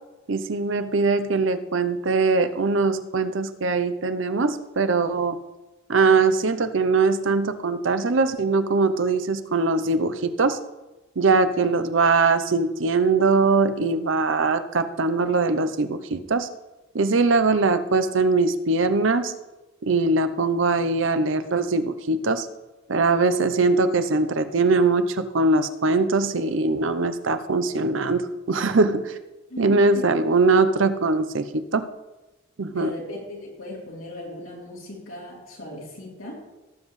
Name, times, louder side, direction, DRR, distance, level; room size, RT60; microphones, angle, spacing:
voice 1, 0.3-5.4 5.9-10.6 11.2-16.5 16.9-19.3 19.8-22.5 22.9-29.1 29.6-31.9 32.6-32.9, right 3 dB, 70° right, 10 dB, 0.7 m, -21 dB
voice 2, 29.5-30.0 32.7-36.4, left 1 dB, 90° left, -4 dB, 3.5 m, -37 dB
17.5 x 7.5 x 3.2 m, 1.1 s
head